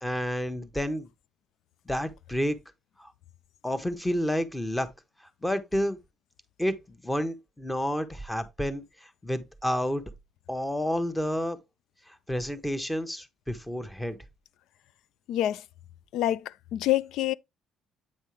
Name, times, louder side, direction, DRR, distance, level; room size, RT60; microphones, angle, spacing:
voice 1, 0.0-1.1 1.9-2.6 3.0-3.1 3.6-4.9 5.4-6.0 6.6-10.0 10.5-11.6 12.1-14.2, equal, 5° left, 1.0 m, -30 dB
voice 2, 15.3-15.6 16.1-17.3, left 13 dB, 75° left, 0.4 m, -27 dB
8.4 x 5.4 x 3.2 m
cardioid pair, 125°, 0 cm